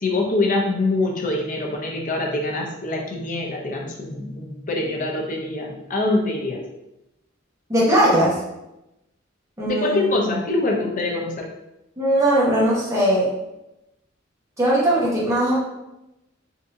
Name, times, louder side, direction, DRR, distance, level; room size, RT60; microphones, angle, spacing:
voice 1, 0.0-6.6 9.7-11.5, left 2 dB, 40° left, 0 dB, 0.6 m, -24 dB
voice 2, 7.7-8.4 9.6-10.3 12.0-13.3 14.6-15.6, right 1 dB, 15° right, -7 dB, 1.1 m, -19 dB
3.6 x 2.7 x 2.6 m, 0.92 s
head